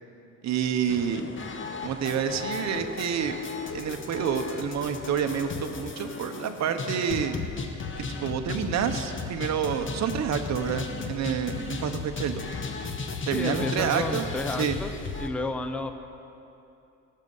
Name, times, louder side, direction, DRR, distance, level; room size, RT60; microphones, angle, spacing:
voice 1, 0.4-1.2 1.8-3.4 3.7-7.4 8.2-12.4 13.3-14.3 14.6-14.8, right 8 dB, 55° right, 7 dB, 0.9 m, -28 dB
sound 1, 0.9-15.3, left 4 dB, 35° left, 1.0 m, -35 dB
voice 2, 13.3-14.9 15.2-15.9, left 2 dB, 5° left, 8 dB, 0.5 m, -31 dB
17.5 x 7.5 x 5.5 m, 2.8 s
cardioid pair, 130°, 34 cm